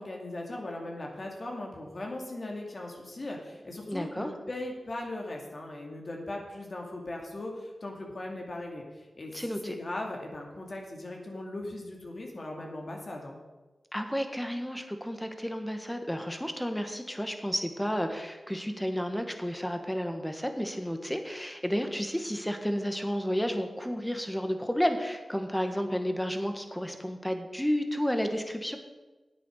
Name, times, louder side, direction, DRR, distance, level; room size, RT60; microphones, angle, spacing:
voice 1, 0.0-9.3 9.6-13.4, left 2 dB, 55° left, 0 dB, 2.4 m, -38 dB
voice 2, 3.9-4.3 9.3-9.7 13.9-28.8, equal, 5° left, 6 dB, 1.6 m, -31 dB
9.6 x 8.3 x 6.6 m, 1.2 s
cardioid pair, 45°, 0 cm